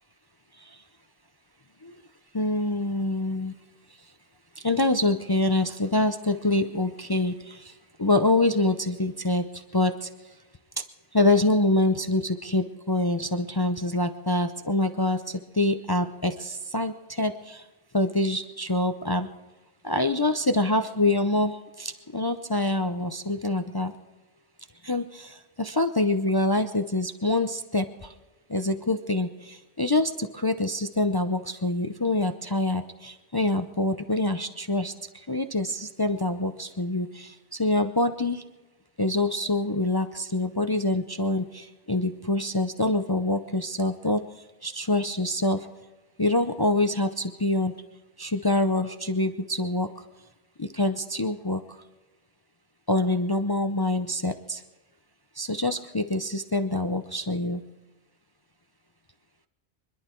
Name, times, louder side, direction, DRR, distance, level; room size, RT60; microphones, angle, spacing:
voice 1, 2.3-3.5 4.6-10.1 11.1-17.7 17.9-19.3 19.8-23.9 24.8-28.1 28.5-38.4 39.0-45.7 46.2-47.7 48.2-50.0 50.6-51.6 52.9-54.6 55.4-57.6, left 2 dB, 25° left, 8 dB, 0.6 m, -26 dB
25.5 x 11.5 x 4.4 m, 1.2 s
omnidirectional pair, 1.2 m